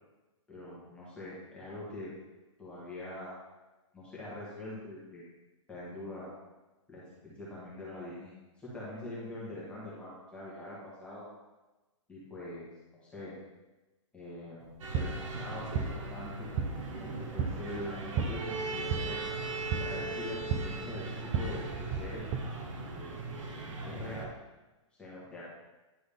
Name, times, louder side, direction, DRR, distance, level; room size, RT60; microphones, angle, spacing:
voice 1, 0.5-2.1 2.6-3.3 3.9-5.2 5.7-6.3 6.9-11.2 12.1-12.7 13.0-13.3 14.1-16.5 17.0-19.2 19.8-22.2 22.9-23.2 23.8-24.3 25.0-25.5, left 1 dB, 5° left, -8 dB, 1.7 m, -43 dB
sound 1, 14.6-22.4, right 6 dB, 30° right, 0.5 m, -36 dB
sound 2, 14.8-24.3, right 3 dB, 75° right, 1.3 m, -39 dB
10.0 x 3.9 x 3.6 m, 1.1 s
hypercardioid pair, 160°, 16 cm